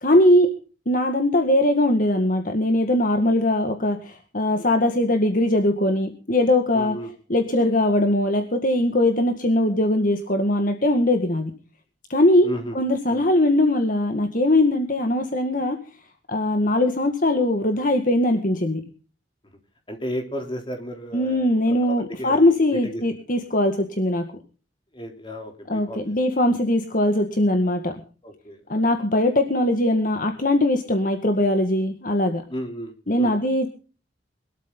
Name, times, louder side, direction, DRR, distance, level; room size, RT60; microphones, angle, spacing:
voice 1, 0.0-0.5 0.9-7.0 7.3-11.5 12.1-12.5 12.8-15.8 16.3-18.8 21.1-24.2 25.7-28.0 28.7-32.4 33.1-33.7, left 1 dB, 45° left, 5 dB, 2.0 m, -21 dB
voice 2, 6.7-7.1 12.4-12.8 13.1-13.2 19.9-21.6 22.1-22.5 22.8-23.0 24.9-26.2 28.2-28.8 32.5-32.9 33.2-33.4, equal, 25° left, 4 dB, 3.8 m, -33 dB
22.5 x 13.0 x 4.0 m, 0.37 s
head